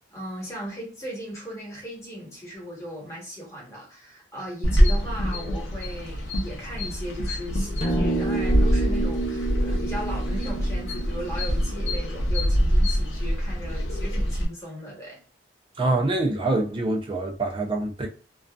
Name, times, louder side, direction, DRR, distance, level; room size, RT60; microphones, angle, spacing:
voice 1, 0.1-15.2, equal, 15° left, 1.1 m, -37 dB
sound 1, 4.6-14.5, equal, 85° left, 0.6 m, -25 dB
sound 2, 7.8-12.3, right 2 dB, 35° left, 0.6 m, -30 dB
voice 2, 15.8-18.1, right 2 dB, 25° right, 0.4 m, -25 dB
2.5 x 2.3 x 2.2 m
head